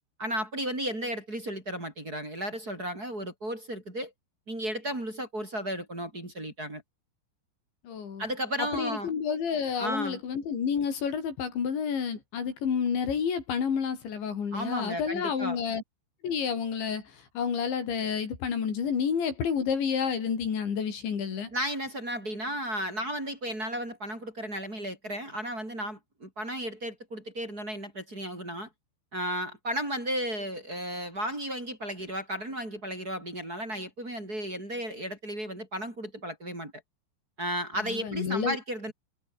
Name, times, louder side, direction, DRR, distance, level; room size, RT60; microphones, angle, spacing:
voice 1, 0.2-4.1 4.5-6.8 8.2-9.1 9.8-10.2 14.5-15.6 21.5-28.7 29.1-36.7 37.4-38.9, equal, 20° right, 5.8 m, -34 dB
voice 2, 7.8-8.2 8.7-15.8 16.2-21.5 37.8-38.6, left 7 dB, 70° left, 6.6 m, -30 dB
omnidirectional pair, 5.5 m